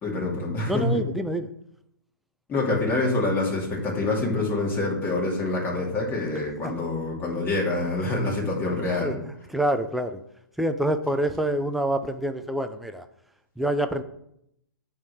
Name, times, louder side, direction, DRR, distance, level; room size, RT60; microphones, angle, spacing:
voice 1, 0.0-0.8 2.5-9.2, left 2 dB, 20° left, -3 dB, 2.5 m, -26 dB
voice 2, 0.7-1.5 8.9-9.1 9.5-10.2 10.6-13.1 13.6-14.0, right 1 dB, ahead, 7 dB, 0.5 m, -26 dB
9.3 x 3.6 x 6.4 m, 0.76 s
hypercardioid pair, 135°, 11 cm